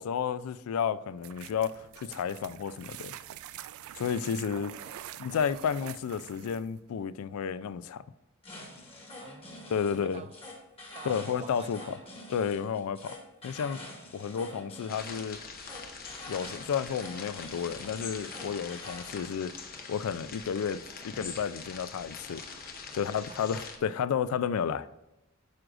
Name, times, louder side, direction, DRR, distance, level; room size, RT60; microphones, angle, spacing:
voice 1, 0.0-3.1 4.0-4.7 5.2-8.0 9.7-10.2 11.0-11.8 12.3-13.2 13.4-13.8 14.1-15.4 16.3-19.6 19.9-22.4 22.9-24.9, left 7 dB, 70° left, 0.3 m, -32 dB
sound 1, 1.2-6.8, right 11 dB, 65° right, 0.3 m, -46 dB
voice 2, 4.5-5.5 9.1-10.3 10.9-12.1 23.0-23.4, right 3 dB, 30° right, 0.6 m, -48 dB
sound 2, 8.4-19.2, left 2 dB, 25° left, 1.4 m, -47 dB
sound 3, 14.9-23.8, left 5 dB, 45° left, 0.9 m, -43 dB
9.4 x 6.2 x 2.5 m
head